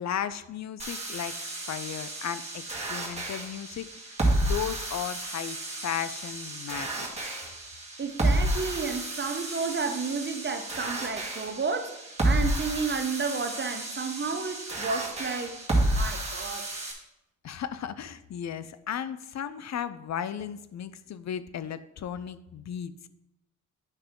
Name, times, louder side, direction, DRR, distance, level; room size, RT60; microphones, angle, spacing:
voice 1, 0.0-1.4 1.7-7.1 17.4-22.9, left 9 dB, 60° left, 0.5 m, -35 dB
sound 1, 0.8-16.9, right 1 dB, 20° right, 2.0 m, -31 dB
voice 2, 8.0-15.5 15.8-16.6, right 4 dB, 35° right, 0.9 m, -32 dB
9.1 x 5.7 x 3.7 m
cardioid pair, 70°, 31 cm